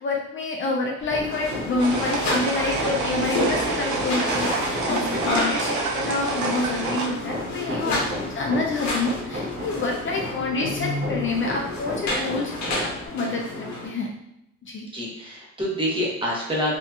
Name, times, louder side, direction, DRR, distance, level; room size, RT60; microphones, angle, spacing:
voice 1, 0.0-12.5 12.8-14.1 14.6-14.9, left 3 dB, 40° left, 0 dB, 0.4 m, -27 dB
Hammer, 1.0-13.1, equal, 30° right, 0.6 m, -35 dB
sound 1, 1.2-13.9, left 2 dB, 70° left, 0.8 m, -30 dB
sound 2, 1.8-7.1, right 3 dB, 75° right, 0.7 m, -28 dB
voice 2, 7.6-8.0 14.9-16.8, equal, 15° right, -5 dB, 1.0 m, -27 dB
2.7 x 2.6 x 2.3 m, 0.81 s
cardioid pair, 90°, 30 cm